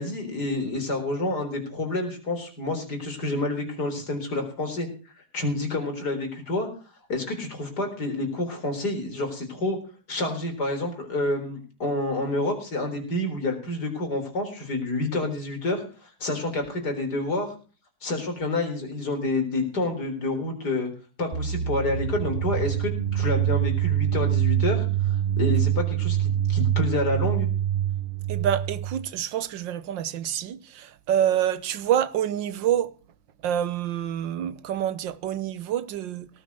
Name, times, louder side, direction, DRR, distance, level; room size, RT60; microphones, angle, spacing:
voice 1, 0.0-4.9 5.2-6.7 7.1-9.8 10.1-17.5 18.0-20.9 21.2-27.5, left 2 dB, 55° left, 4.5 m, -28 dB
sound 1, 21.3-29.1, right 11 dB, 50° right, 0.7 m, -25 dB
voice 2, 28.3-32.9 33.4-36.3, right 10 dB, 70° right, 1.6 m, -27 dB
18.0 x 6.6 x 8.2 m
omnidirectional pair, 2.1 m